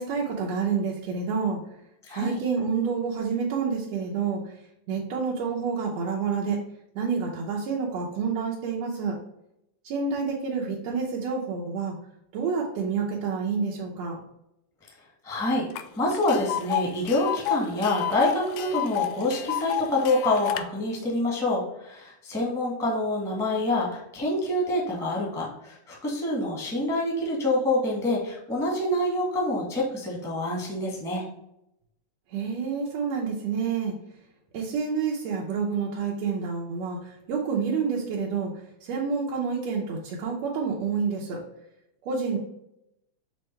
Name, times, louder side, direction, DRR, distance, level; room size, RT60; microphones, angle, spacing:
voice 1, 0.0-1.6 2.1-4.4 4.9-6.6 7.0-9.2 9.8-11.9 12.3-14.2 32.3-33.9 34.5-38.5 38.8-41.4 42.0-42.4, right 5 dB, 70° right, -4 dB, 2.0 m, -28 dB
voice 2, 2.0-2.4 15.2-15.7 15.9-31.2, left 1 dB, ahead, -3 dB, 1.0 m, -26 dB
Tick, 15.8-15.9 16.1-20.6, left 11 dB, 80° left, 1.6 m, -30 dB
6.4 x 3.3 x 4.5 m, 0.82 s
omnidirectional pair, 3.4 m